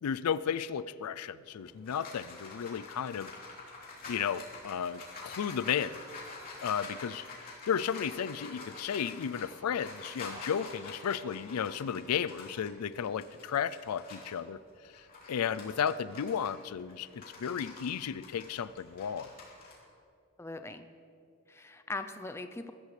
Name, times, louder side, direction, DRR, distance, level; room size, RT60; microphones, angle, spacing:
voice 1, 0.0-3.3 4.1-6.0 6.6-14.6 15.3-19.3, left 8 dB, 90° left, 17 dB, 0.4 m, -34 dB
sound 1, 1.4-14.4 14.8-19.7, left 3 dB, 40° left, 3.3 m, -47 dB
voice 2, 20.4-20.9 21.5-22.7, left 2 dB, 10° left, 9 dB, 0.5 m, -40 dB
21.5 x 13.5 x 3.3 m, 2.6 s
head